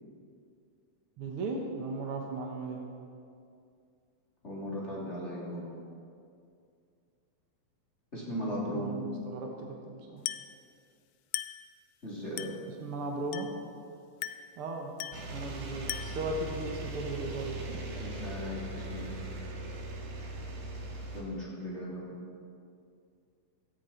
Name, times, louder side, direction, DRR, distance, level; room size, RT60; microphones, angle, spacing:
voice 1, 1.2-2.8 8.7-10.2 12.8-13.5 14.6-14.9 15.3-17.8, right 3 dB, 55° right, 0 dB, 1.8 m, -37 dB
voice 2, 4.4-5.6 8.1-9.0 12.0-12.5 18.0-19.2 21.1-22.2, equal, 20° left, -6 dB, 3.5 m, -37 dB
Glass, 10.3-10.6 11.3-11.7 12.4-12.7 13.3-13.7 14.2-14.6 15.0-15.3 15.9-16.3, left 13 dB, 85° left, 1.5 m, -38 dB
sound 1, 15.1-21.2, right 2 dB, 80° right, 3.4 m, -39 dB
17.0 x 14.0 x 4.5 m, 2.4 s
omnidirectional pair, 3.5 m